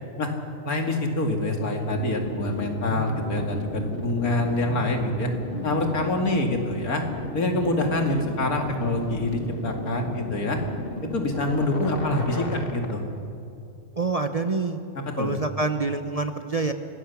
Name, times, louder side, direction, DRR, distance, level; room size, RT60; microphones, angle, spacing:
voice 1, 0.7-5.3 5.6-7.0 7.3-10.6 11.1-13.0 15.2-15.3, left 1 dB, 85° left, 3 dB, 2.8 m, -25 dB
sound 1, 1.9-12.9, left 2 dB, 40° left, 2.1 m, -34 dB
voice 2, 14.0-14.8 15.2-16.7, right 3 dB, 30° right, 7 dB, 0.8 m, -26 dB
25.5 x 18.5 x 7.2 m, 2.6 s
omnidirectional pair, 1.5 m